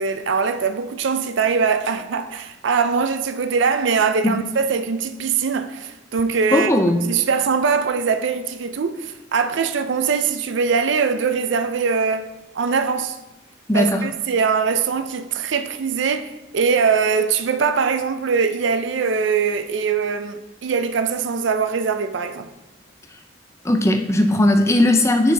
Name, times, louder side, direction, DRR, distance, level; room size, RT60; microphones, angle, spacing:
voice 1, 0.0-6.7 7.1-12.3 12.5-13.2 13.7-22.5, right 5 dB, 70° right, 0.5 m, -22 dB
voice 2, 6.5-7.0 13.7-14.1 23.6-25.3, left 1 dB, 15° left, 0.5 m, -17 dB
7.3 x 6.3 x 3.4 m
head